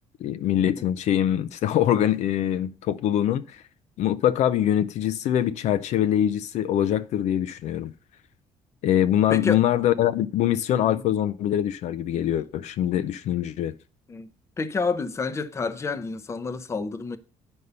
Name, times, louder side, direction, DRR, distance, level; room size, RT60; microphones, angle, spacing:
voice 1, 0.2-3.6 4.0-7.9 8.8-13.7, left 11 dB, 60° left, 0.5 m, -23 dB
voice 2, 9.3-9.6 10.8-11.0 14.1-14.3 14.6-17.2, left 4 dB, 20° left, 0.7 m, -29 dB
9.6 x 5.4 x 6.7 m
cardioid pair, 170°, 14 cm